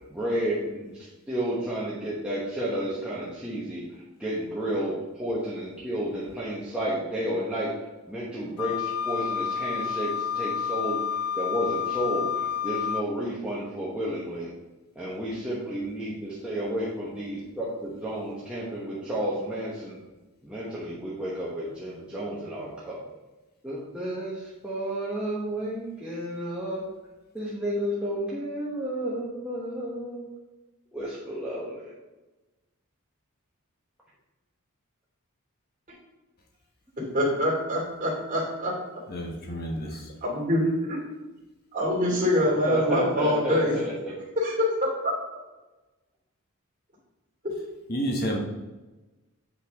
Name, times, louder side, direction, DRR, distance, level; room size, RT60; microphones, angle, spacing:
voice 1, 0.0-7.7 8.1-14.5 14.9-20.0 20.4-23.0 23.6-26.8 27.3-30.2 30.9-31.9 42.4-44.1, right 1 dB, 5° right, -8 dB, 1.2 m, -31 dB
Wind instrument woodwind instrument, 8.6-13.1, left 7 dB, 75° left, 0.4 m, -29 dB
voice 2, 37.1-38.7 39.9-41.0 41.7-43.7 44.4-44.5 44.8-45.1 47.4-47.5, equal, 35° right, -3 dB, 2.6 m, -25 dB
voice 3, 39.1-40.0 47.9-48.4, equal, 45° left, 1 dB, 1.1 m, -29 dB
7.9 x 5.6 x 3.6 m, 1.1 s
head